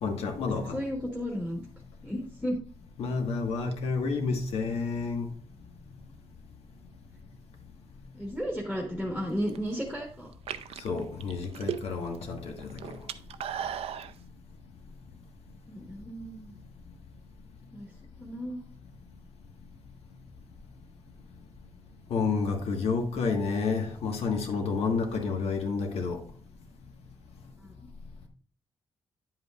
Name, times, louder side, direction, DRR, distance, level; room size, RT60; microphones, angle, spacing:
voice 1, 0.0-0.8 3.0-5.3 10.8-12.7 22.1-26.2, left 4 dB, 90° left, 1.5 m, -30 dB
voice 2, 0.7-1.6 2.0-2.6 8.1-10.3 15.7-16.5 17.7-17.9 18.2-18.6 27.6-27.7, equal, 5° left, 1.3 m, -33 dB
sound 1, 9.3-9.8 10.3-12.2 12.5-14.1, right 9 dB, 80° right, 0.5 m, -36 dB
9.7 x 7.8 x 2.4 m
wide cardioid pair, 170°, 10 cm